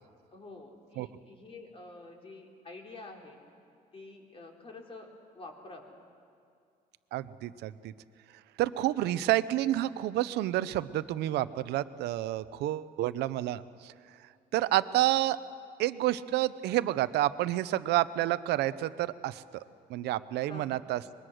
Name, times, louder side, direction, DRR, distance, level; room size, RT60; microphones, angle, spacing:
voice 1, 0.3-3.4 3.9-5.1 5.3-5.9 20.5-20.9, left 2 dB, 35° left, 1 dB, 3.6 m, -48 dB
voice 2, 7.1-7.9 8.6-13.9 14.5-15.4 15.8-19.6 19.9-21.0, right 14 dB, 80° right, 15 dB, 0.7 m, -29 dB
24.5 x 21.5 x 6.4 m, 2.4 s
cardioid pair, 110°, 17 cm